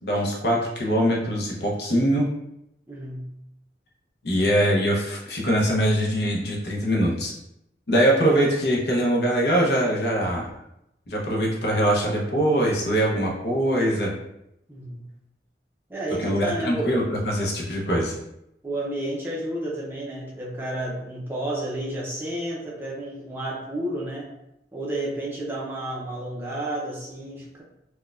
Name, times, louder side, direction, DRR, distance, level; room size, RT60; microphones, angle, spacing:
voice 1, 0.0-2.3 4.2-7.3 7.9-10.5 11.1-14.1 16.2-18.1, equal, 60° left, -2 dB, 0.7 m, -22 dB
voice 2, 2.9-3.3 14.7-15.1 15.9-17.0 18.6-24.3 24.7-27.6, right 1 dB, 10° right, -5 dB, 0.5 m, -31 dB
4.5 x 2.2 x 2.4 m, 0.83 s
head